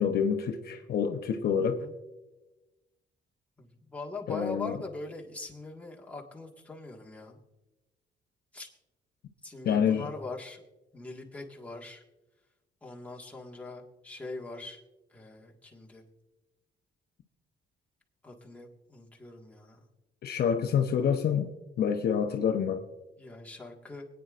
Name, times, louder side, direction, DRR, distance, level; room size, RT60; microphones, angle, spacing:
voice 1, 0.0-1.8 4.3-4.8 9.6-10.1 20.2-21.5 21.8-22.8, left 7 dB, 60° left, 0.8 m, -27 dB
voice 2, 1.6-1.9 3.6-7.4 8.5-8.7 9.4-10.6 10.9-12.0 12.8-14.8 15.1-16.0 18.2-19.8 23.2-24.1, left 3 dB, 10° left, 1.7 m, -42 dB
24.5 x 9.4 x 2.5 m
cardioid pair, 125°, 19 cm